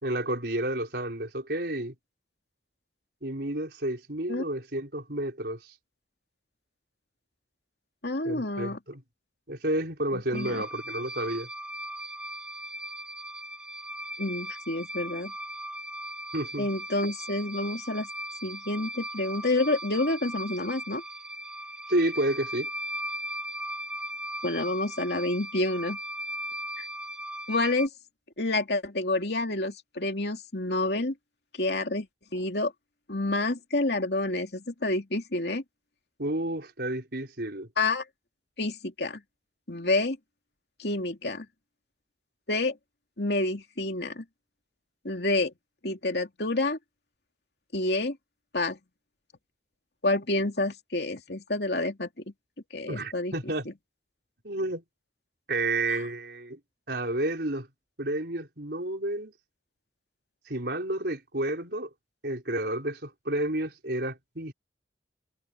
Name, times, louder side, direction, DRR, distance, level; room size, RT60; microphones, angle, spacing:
voice 1, 0.0-2.0 3.2-5.7 8.3-9.0 9.5-11.5 16.3-16.7 21.9-22.7 36.2-37.7 52.9-53.7 54.4-54.8 55.5-56.6 56.9-57.7 58.0-59.3 60.5-61.9 62.2-64.5, right 1 dB, 60° right, 5.2 m, -30 dB
voice 2, 8.0-8.8 10.1-10.6 14.2-15.3 16.6-18.1 18.4-21.0 24.4-26.0 26.8-26.9 27.5-27.9 28.4-31.1 31.6-32.1 32.3-32.7 33.1-35.6 37.8-38.0 38.6-39.2 39.7-40.2 40.8-41.5 42.5-42.8 43.2-44.2 45.0-45.5 45.8-46.8 47.7-48.2 48.5-48.8 50.0-52.1 52.7-53.3 55.9-56.0, left 2 dB, 65° left, 3.0 m, -28 dB
sound 1, 10.3-27.9, right 1 dB, 5° right, 1.3 m, -38 dB
head